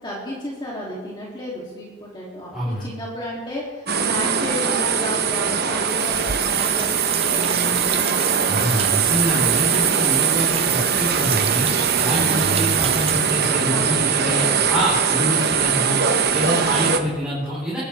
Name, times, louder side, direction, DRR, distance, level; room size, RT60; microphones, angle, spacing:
voice 1, 0.0-8.4 9.7-10.0 12.2-12.7 13.6-14.9 16.4-17.0, equal, 25° left, -6 dB, 2.9 m, -33 dB
voice 2, 2.5-2.9 8.5-11.7 12.0-16.0 16.3-17.8, equal, 5° right, -9 dB, 4.2 m, -26 dB
sound 1, 3.9-17.0, right 6 dB, 55° right, 1.0 m, -21 dB
sound 2, 5.9-13.7, right 10 dB, 30° right, 0.4 m, -29 dB
sound 3, 6.4-6.7 7.1-9.1 9.4-9.8 10.1-10.2, left 4 dB, 70° left, 2.0 m, -45 dB
22.5 x 11.5 x 3.5 m, 1.3 s
head